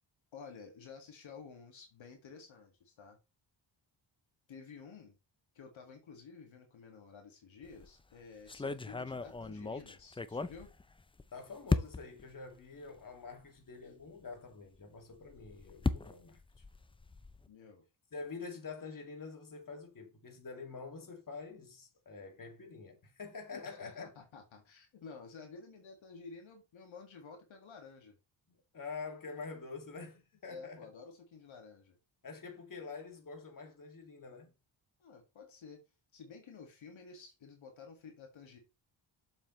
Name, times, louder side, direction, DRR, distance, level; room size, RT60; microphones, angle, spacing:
voice 1, 0.3-3.2 4.5-5.2 5.5-10.7 17.5-17.8 23.5-28.1 30.5-32.0 35.0-35.8 36.1-38.6, left 5 dB, 70° left, 2.1 m, -52 dB
sound 1, 7.6-7.9 8.5-11.2 11.7-12.2 13.0-13.1 13.4-13.5 15.1-17.5, left 3 dB, 10° left, 0.4 m, -36 dB
voice 2, 11.3-16.6 18.1-24.1 28.7-30.9 32.2-34.5, left 4 dB, 40° left, 2.3 m, -46 dB
7.2 x 7.1 x 3.1 m
cardioid pair, 95°, 49 cm